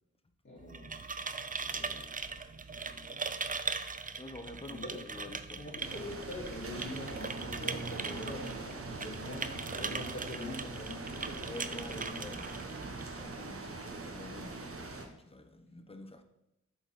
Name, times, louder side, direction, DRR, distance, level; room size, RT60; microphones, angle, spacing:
voice 1, 0.4-3.5 4.7-5.0 5.6-12.2, left 1 dB, 40° left, -6 dB, 2.7 m, -45 dB
sound 1, 0.6-13.3, right 4 dB, 30° right, 0.6 m, -40 dB
voice 2, 4.2-5.7 11.4-16.2, left 2 dB, 20° left, 6 dB, 1.0 m, -48 dB
sound 2, 5.8-15.1, right 3 dB, 50° right, 1.3 m, -42 dB
sound 3, 9.2-13.1, right 2 dB, 90° right, 1.6 m, -60 dB
7.9 x 4.3 x 6.1 m, 0.88 s
cardioid pair, 65°, 30 cm